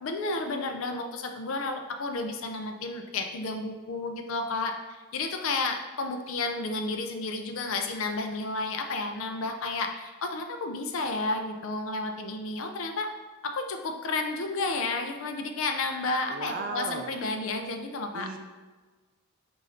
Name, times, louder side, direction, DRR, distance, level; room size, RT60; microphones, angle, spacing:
voice 1, 0.0-13.1 13.4-18.3, left 3 dB, 70° left, 5 dB, 0.5 m, -32 dB
voice 2, 16.3-17.1 18.1-18.4, right 4 dB, 40° right, 5 dB, 0.4 m, -35 dB
5.5 x 2.6 x 3.2 m, 1.4 s
head